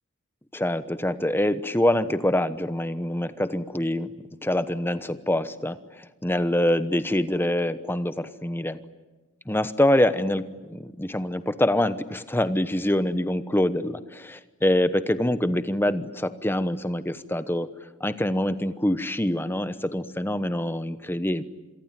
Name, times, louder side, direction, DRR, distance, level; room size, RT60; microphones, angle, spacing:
voice 1, 0.5-4.1 4.4-8.8 9.5-17.7 18.0-21.4, left 1 dB, 10° left, 12 dB, 1.0 m, -25 dB
27.0 x 23.0 x 9.2 m, 1.2 s
head